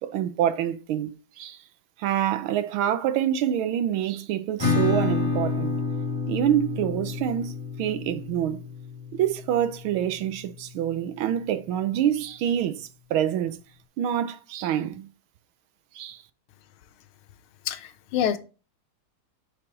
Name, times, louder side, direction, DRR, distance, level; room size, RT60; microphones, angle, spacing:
voice 1, 0.0-1.6 2.0-5.8 6.3-7.5 7.8-8.6 9.1-13.6 14.0-15.1 15.9-16.2, right 10 dB, 75° right, 1.4 m, -26 dB
Acoustic guitar / Strum, 4.6-10.0, left 4 dB, 10° left, 1.8 m, -29 dB
voice 2, 17.7-18.4, left 9 dB, 80° left, 1.5 m, -26 dB
6.6 x 5.8 x 3.8 m
omnidirectional pair, 2.4 m